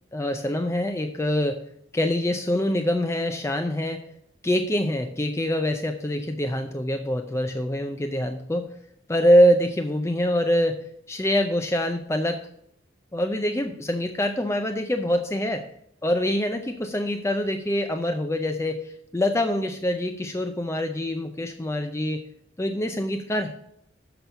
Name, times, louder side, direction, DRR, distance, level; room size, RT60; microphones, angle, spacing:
voice 1, 0.1-1.6 1.9-4.1 4.4-8.7 9.1-12.5 13.1-15.6 16.0-22.2 22.6-23.5, equal, 15° left, 6 dB, 0.5 m, -24 dB
7.0 x 5.9 x 6.8 m, 0.70 s
head